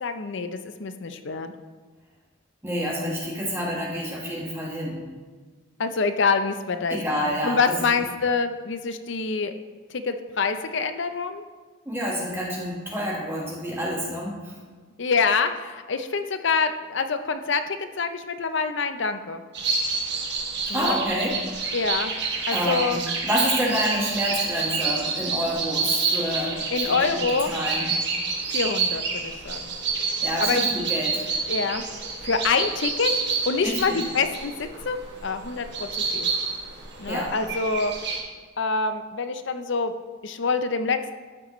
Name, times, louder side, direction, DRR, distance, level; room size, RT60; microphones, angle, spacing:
voice 1, 0.0-1.5 5.8-7.0 7.4-9.5 9.9-11.4 15.0-19.4 20.7-21.0 21.7-22.1 22.5-23.0 26.7-27.5 28.5-29.7 30.4-30.6 31.5-31.8 32.2-33.1 33.5-36.3 37.0-37.9 38.6-39.9 40.2-41.0, left 4 dB, 60° left, 9 dB, 0.6 m, -26 dB
voice 2, 2.6-5.0 6.9-7.6 11.8-14.6 20.7-21.3 22.5-27.2 27.5-27.9 30.2-31.2 33.6-34.0 37.1-37.3, equal, 10° right, -4 dB, 1.4 m, -28 dB
sound 1, 19.5-38.2, right 4 dB, 55° right, 1.4 m, -28 dB
12.0 x 7.6 x 3.1 m, 1.4 s
head